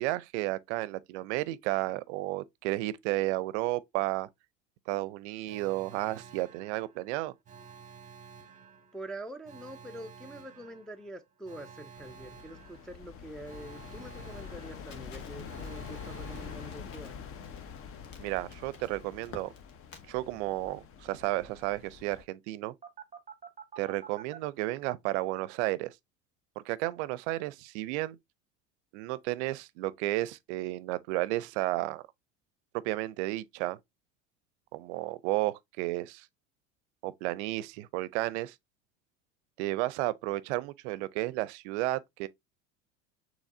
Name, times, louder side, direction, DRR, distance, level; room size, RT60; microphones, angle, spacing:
voice 1, 0.0-4.3 4.9-7.3 18.2-19.5 20.1-22.7 23.8-25.9 26.7-28.2 28.9-32.0 32.8-33.8 34.7-36.3 37.0-38.5 39.6-42.3, right 18 dB, 60° right, 0.6 m, -32 dB
Alarm, 5.4-17.4 22.8-24.4, right 7 dB, 20° right, 0.9 m, -51 dB
voice 2, 8.9-17.3, right 1 dB, ahead, 0.4 m, -45 dB
sound 1, 12.0-22.2, left 7 dB, 35° left, 0.7 m, -45 dB
Crackle, 14.9-20.1, left 4 dB, 75° left, 1.4 m, -53 dB
6.3 x 3.1 x 2.6 m
hypercardioid pair, 75°, 39 cm